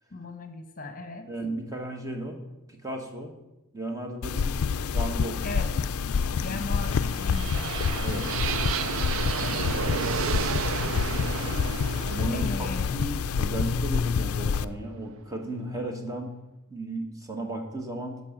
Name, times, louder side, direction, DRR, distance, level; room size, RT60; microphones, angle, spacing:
voice 1, 0.1-1.3 5.4-6.0 6.3-7.7 9.4-9.7 12.3-12.9, left 2 dB, 40° left, 7 dB, 1.0 m, -37 dB
voice 2, 1.3-2.4 2.7-3.3 3.7-5.4 8.0-8.2 9.7-10.0 12.1-12.7 12.9-16.4 16.7-18.2, right 1 dB, 15° right, 3 dB, 1.4 m, -35 dB
sound 1, 4.2-14.7, left 6 dB, 80° left, 0.4 m, -27 dB
sound 2, 6.7-14.6, right 8 dB, 65° right, 0.4 m, -33 dB
12.0 x 5.4 x 7.3 m, 0.97 s
head